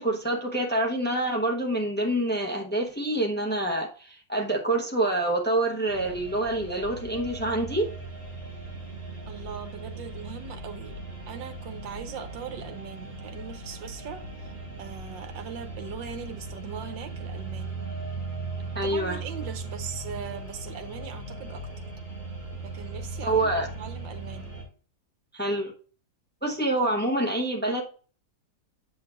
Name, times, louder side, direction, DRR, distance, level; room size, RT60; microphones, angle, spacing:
voice 1, 0.0-7.9 18.7-19.2 23.2-23.7 25.3-25.7 26.4-27.8, right 1 dB, 10° left, 0.4 m, -26 dB
sound 1, 5.9-24.6, right 2 dB, 35° right, 4.1 m, -38 dB
voice 2, 9.3-11.0 11.3-17.8 18.8-21.9 22.6-24.6, right 8 dB, 85° right, 1.6 m, -40 dB
8.4 x 6.1 x 2.4 m
omnidirectional pair, 2.0 m